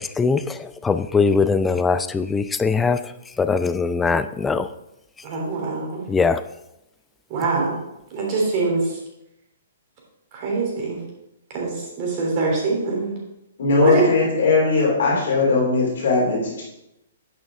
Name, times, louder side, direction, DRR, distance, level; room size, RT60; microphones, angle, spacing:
voice 1, 0.0-3.0 3.4-4.7 6.1-6.4, left 4 dB, 10° left, 12 dB, 0.4 m, -21 dB
voice 2, 5.2-6.0 7.3-7.7 8.1-9.0 10.3-11.0 11.5-13.1 13.8-14.0, right 3 dB, 35° right, -2 dB, 3.2 m, -23 dB
voice 3, 13.6-16.6, left 3 dB, 55° left, -3 dB, 3.3 m, -19 dB
10.5 x 6.2 x 3.7 m, 0.87 s
figure-of-eight pair, 120°, 0 cm